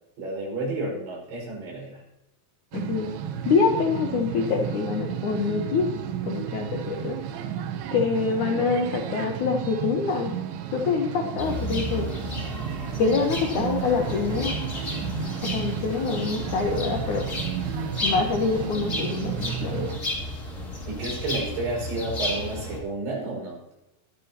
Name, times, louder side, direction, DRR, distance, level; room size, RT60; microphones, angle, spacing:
voice 1, 0.2-2.0 20.9-23.6, right 2 dB, 60° right, -2 dB, 7.7 m, -31 dB
voice 2, 2.7-3.1 3.4-5.9 6.2-7.2 7.9-10.3 10.7-12.1 13.0-14.6 15.4-17.3 18.0-19.9, left 5 dB, 80° left, 3 dB, 1.7 m, -25 dB
sound 1, 2.7-20.0, right 9 dB, 75° right, 2.3 m, -33 dB
sound 2, 11.4-22.8, left 1 dB, 25° left, 2.1 m, -33 dB
24.5 x 9.7 x 3.0 m, 0.92 s
omnidirectional pair, 5.6 m